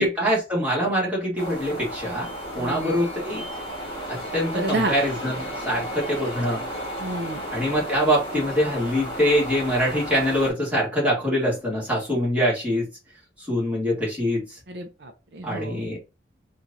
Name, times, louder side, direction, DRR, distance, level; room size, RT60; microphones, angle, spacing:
voice 1, 0.0-2.3 2.5-3.4 4.1-6.6 7.5-12.9 13.5-14.4 15.4-16.0, equal, 10° right, 1.7 m, -24 dB
sound 1, 1.4-10.5, equal, 25° left, 1.8 m, -33 dB
voice 2, 2.6-3.0 4.5-5.0 7.0-7.4 14.7-15.8, right 2 dB, 65° right, 0.6 m, -29 dB
4.4 x 2.5 x 2.6 m
head